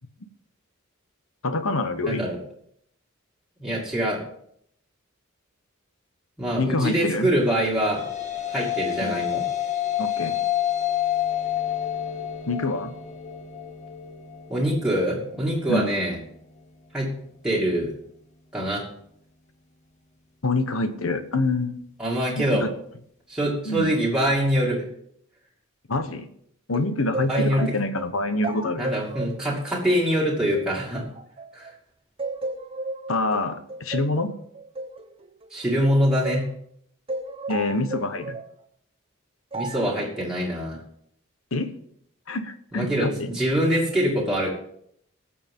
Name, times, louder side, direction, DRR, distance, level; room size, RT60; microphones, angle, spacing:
voice 1, 1.4-2.3 6.5-7.3 9.0-9.2 10.0-10.4 12.5-12.9 15.7-15.9 20.4-21.8 22.4-22.7 23.7-23.9 25.9-26.3 26.7-28.8 33.1-34.3 37.5-38.4 41.5-41.7 42.3-43.3, left 2 dB, 65° left, 10 dB, 1.1 m, -26 dB
voice 2, 2.0-2.4 3.6-4.2 6.4-8.1 8.5-9.5 14.5-16.2 16.9-17.1 17.4-17.9 18.5-18.9 22.0-22.7 23.3-24.9 27.3-27.6 28.8-31.1 31.5-31.7 35.5-36.5 39.5-40.8 42.7-44.5, equal, 5° right, -5 dB, 2.5 m, -24 dB
sound 1, 7.5-16.1, left 11 dB, 35° left, 1.8 m, -29 dB
sound 2, 26.7-31.8 32.2-36.5 37.1-38.5 39.5-40.0, right 2 dB, 25° right, 0.9 m, -34 dB
19.0 x 7.2 x 3.7 m, 0.68 s
head